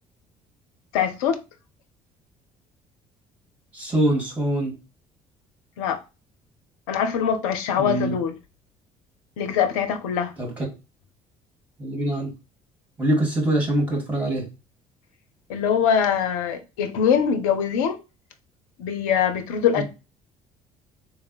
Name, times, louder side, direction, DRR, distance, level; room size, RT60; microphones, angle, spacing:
voice 1, 0.9-1.4 5.8-6.0 6.9-8.3 9.4-10.3 15.5-18.0 18.8-19.8, left 8 dB, 70° left, 0.6 m, -23 dB
voice 2, 3.7-4.7 7.8-8.1 10.4-10.7 11.8-12.3 13.0-14.5 19.8-19.9, right 1 dB, 10° right, 2.0 m, -24 dB
3.3 x 2.1 x 4.2 m
figure-of-eight pair, 55°, 18 cm